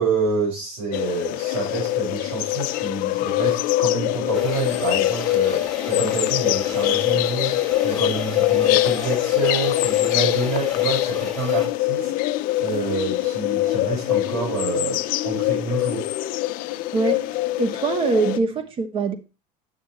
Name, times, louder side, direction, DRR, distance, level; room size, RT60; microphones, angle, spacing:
voice 1, 0.0-12.1 12.6-16.1, right 4 dB, 85° right, 5.7 m, -28 dB
sound 1, 0.9-18.4, left 16 dB, 55° left, 0.6 m, -23 dB
sound 2, 4.3-11.7, left 3 dB, 5° left, 2.2 m, -35 dB
voice 2, 16.9-19.1, right 3 dB, 30° right, 1.2 m, -23 dB
9.1 x 6.4 x 4.1 m
cardioid pair, 155°, 18 cm